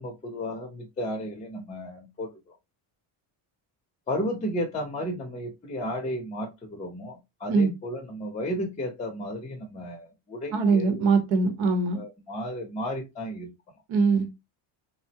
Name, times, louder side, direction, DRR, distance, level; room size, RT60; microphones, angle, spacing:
voice 1, 0.0-2.6 4.1-11.0 11.3-11.4 11.9-13.5, equal, 15° left, 0.6 m, -33 dB
voice 2, 10.5-12.0 13.9-14.3, right 4 dB, 70° right, 1.0 m, -22 dB
3.7 x 2.0 x 2.7 m
cardioid pair, 120°, 49 cm